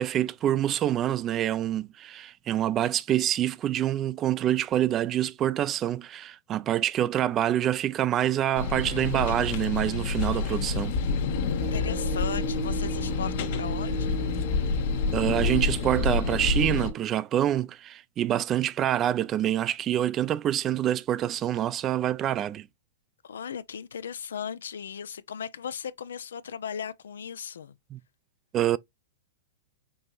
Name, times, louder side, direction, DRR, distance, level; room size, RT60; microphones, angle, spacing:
voice 1, 0.0-10.9 15.1-22.7 27.9-28.0 28.5-28.8, right 12 dB, 30° right, 0.3 m, -26 dB
sound 1, 8.6-16.9, left 4 dB, 60° left, 0.8 m, -28 dB
voice 2, 11.5-14.4 23.2-27.8, left 7 dB, 85° left, 0.3 m, -37 dB
sound 2, 11.6-17.1, right 8 dB, 55° right, 1.4 m, -38 dB
5.3 x 2.8 x 2.3 m
hypercardioid pair, 120°, 0 cm